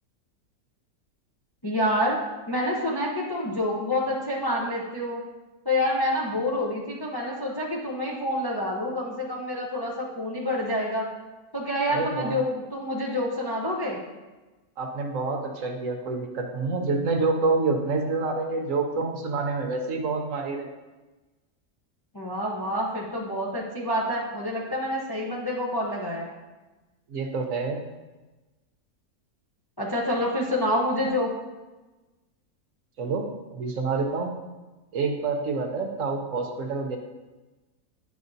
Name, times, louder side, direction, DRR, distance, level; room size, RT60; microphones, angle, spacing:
voice 1, 1.6-2.2 2.5-5.2 5.6-11.1 11.5-14.0 22.1-26.3 29.8-31.3, left 1 dB, 20° left, -3 dB, 0.6 m, -27 dB
voice 2, 11.9-12.4 14.8-20.7 27.1-27.8 33.0-34.3 34.9-37.0, right 3 dB, 65° right, 3 dB, 1.0 m, -27 dB
9.5 x 5.0 x 2.7 m, 1.2 s
omnidirectional pair, 1.6 m